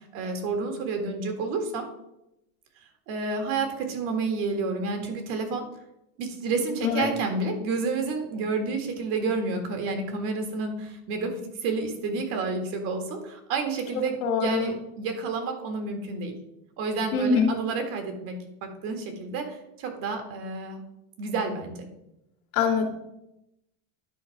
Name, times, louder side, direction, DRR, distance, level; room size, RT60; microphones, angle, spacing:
voice 1, 0.0-1.9 3.1-5.7 6.2-16.4 16.8-18.3 18.6-20.8 21.2-21.9, right 4 dB, 50° right, 5 dB, 1.9 m, -30 dB
voice 2, 14.2-14.7 17.1-17.5 22.5-22.8, left 5 dB, 70° left, 2 dB, 2.1 m, -23 dB
10.0 x 4.0 x 5.9 m, 0.84 s
supercardioid pair, 160°, 43 cm